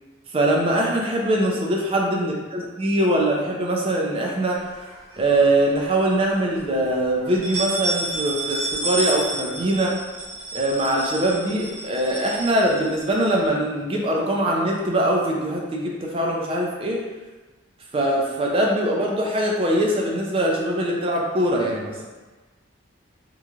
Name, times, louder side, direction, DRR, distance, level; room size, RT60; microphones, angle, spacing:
voice 1, 0.3-2.3 2.8-4.6 5.2-10.0 10.5-17.0 17.9-22.1, right 1 dB, 30° right, -2 dB, 0.4 m, -22 dB
sound 1, 4.8-5.7 6.1-6.2 6.5-6.6 7.2-13.4, right 2 dB, 65° right, 0.8 m, -30 dB
3.0 x 2.4 x 2.3 m, 1.2 s
head